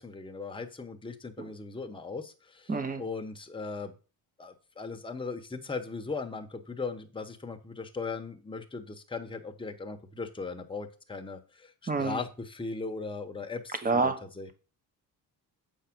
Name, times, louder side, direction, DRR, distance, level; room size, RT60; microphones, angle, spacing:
voice 1, 0.0-3.9 4.4-14.5, left 4 dB, 15° left, 1.1 m, -38 dB
voice 2, 2.7-3.0 11.9-12.2 13.8-14.2, right 4 dB, 20° right, 1.1 m, -27 dB
8.0 x 5.0 x 6.1 m
cardioid pair, 135°, 37 cm